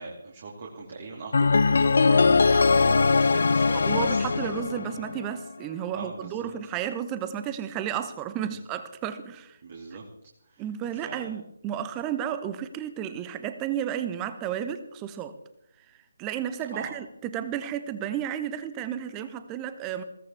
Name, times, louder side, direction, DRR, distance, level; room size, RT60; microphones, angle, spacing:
voice 1, 0.0-4.5 4.8-4.9 5.9-6.5 8.3-8.5 9.6-10.1 10.5-11.3 16.7-16.9, right 4 dB, 35° right, -1 dB, 2.8 m, -41 dB
sound 1, 1.3-5.4, left 4 dB, 50° left, 0.5 m, -21 dB
voice 2, 3.7-9.6 10.6-15.3 16.2-20.0, right 10 dB, 15° right, 11 dB, 1.1 m, -32 dB
21.0 x 17.0 x 3.6 m, 0.78 s
figure-of-eight pair, 150°, 0 cm